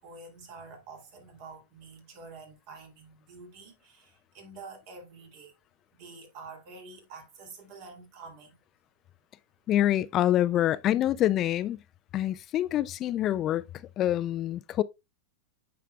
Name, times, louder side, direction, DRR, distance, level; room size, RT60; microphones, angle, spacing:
voice 1, 0.0-5.5 5.9-8.6, right 4 dB, 55° right, 2.5 m, -48 dB
voice 2, 9.7-11.8 12.1-13.6 14.0-14.8, left 12 dB, 35° left, 0.3 m, -26 dB
9.3 x 4.7 x 2.3 m
hypercardioid pair, 120°, 0 cm